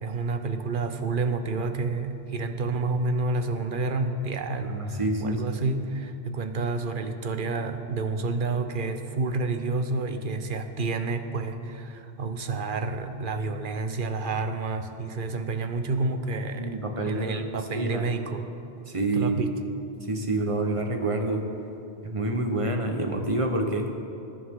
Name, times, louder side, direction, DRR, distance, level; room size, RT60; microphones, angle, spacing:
voice 1, 0.0-16.8 17.1-18.4 19.1-19.5, right 3 dB, 50° right, 7 dB, 0.9 m, -29 dB
voice 2, 4.6-5.6 16.6-18.0 18.9-19.5 20.1-21.4 22.0-23.9, right 2 dB, 30° right, 3 dB, 1.1 m, -27 dB
20.5 x 10.0 x 3.7 m, 2.8 s
omnidirectional pair, 1.2 m